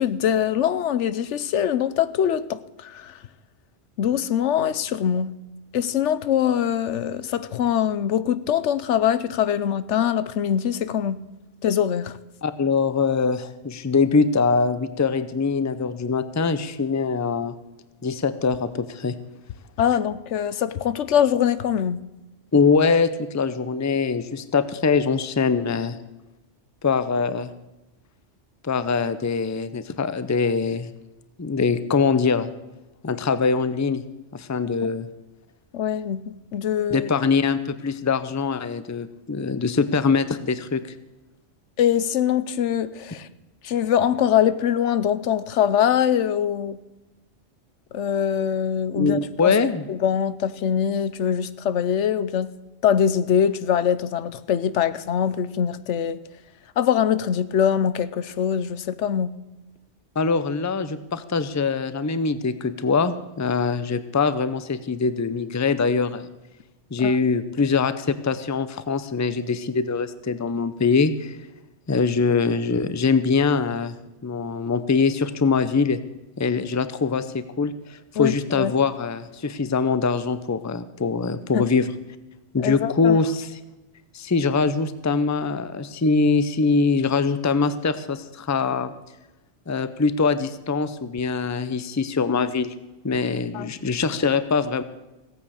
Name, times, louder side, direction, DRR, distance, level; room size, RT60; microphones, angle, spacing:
voice 1, 0.0-3.2 4.0-5.3 5.7-11.2 11.6-12.2 19.8-22.0 35.7-37.1 41.8-43.3 43.6-46.8 47.9-49.6 49.9-52.5 52.8-56.2 56.8-59.3 67.0-67.1 78.2-78.7 81.5-81.7 82.6-83.2 93.5-93.7, left 9 dB, 80° left, 15 dB, 1.0 m, -23 dB
voice 2, 12.4-17.5 18.0-19.1 22.5-26.0 26.8-27.5 28.6-30.9 31.4-32.5 33.0-34.0 34.3-35.1 36.9-40.8 48.9-49.8 60.2-66.3 66.9-71.4 71.9-73.9 74.2-76.0 76.4-81.9 82.5-83.6 84.1-88.9 89.7-92.7 93.0-94.8, left 4 dB, 20° left, 13 dB, 0.5 m, -23 dB
16.0 x 9.0 x 6.4 m, 1.1 s
omnidirectional pair, 1.2 m